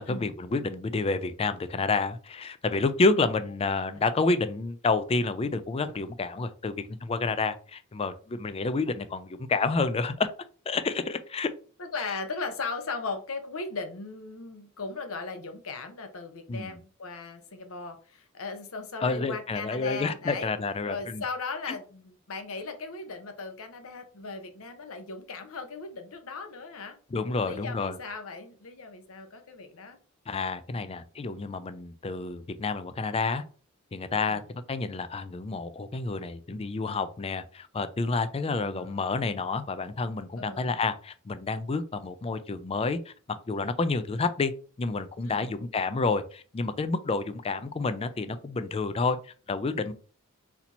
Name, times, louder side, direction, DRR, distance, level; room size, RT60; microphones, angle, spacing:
voice 1, 0.0-10.3 10.7-11.5 16.5-16.7 19.0-21.2 21.7-21.8 27.1-28.0 30.3-33.4 33.9-34.4 34.7-43.1 43.5-44.5 44.8-49.9, left 3 dB, 25° left, 0.4 m, -29 dB
voice 2, 11.8-20.5 20.9-27.0 27.3-30.0 38.3-39.1 40.4-40.7 45.2-45.5, left 4 dB, 70° left, 0.8 m, -38 dB
4.2 x 2.9 x 4.1 m
head